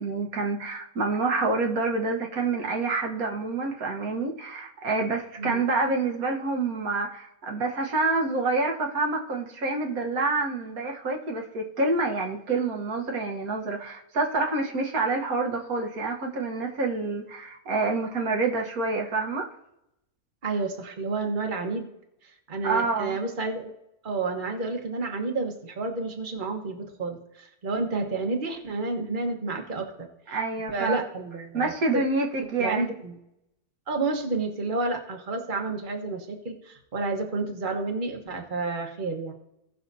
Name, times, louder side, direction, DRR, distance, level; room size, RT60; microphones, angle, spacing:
voice 1, 0.0-19.5 22.6-23.2 30.3-31.0 31.5-32.9, right 3 dB, 75° right, 1 dB, 1.6 m, -27 dB
voice 2, 20.4-21.9 22.5-23.7 24.0-29.8 30.3-30.4 30.7-32.0 32.6-33.2 33.9-39.3, right 3 dB, 35° right, 3 dB, 1.3 m, -30 dB
17.0 x 5.8 x 2.7 m, 0.84 s
omnidirectional pair, 1.5 m